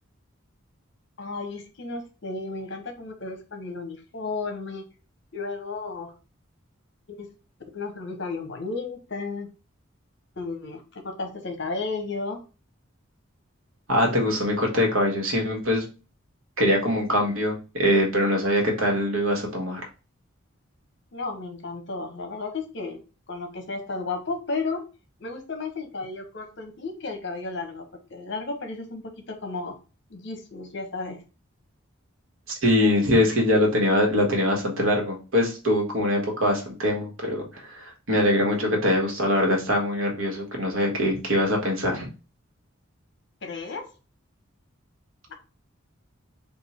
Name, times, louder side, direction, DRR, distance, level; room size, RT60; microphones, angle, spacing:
voice 1, 1.2-4.8 5.3-6.1 7.1-7.3 7.7-9.5 10.4-12.4 21.1-23.0 23.3-24.9 25.2-29.8 30.1-31.2 32.8-32.9 43.4-43.9, left 3 dB, 60° left, 4 dB, 1.0 m, -33 dB
voice 2, 13.9-15.8 16.6-19.8 32.6-42.1, left 1 dB, 90° right, 1 dB, 1.4 m, -23 dB
3.7 x 2.6 x 4.2 m, 0.32 s
head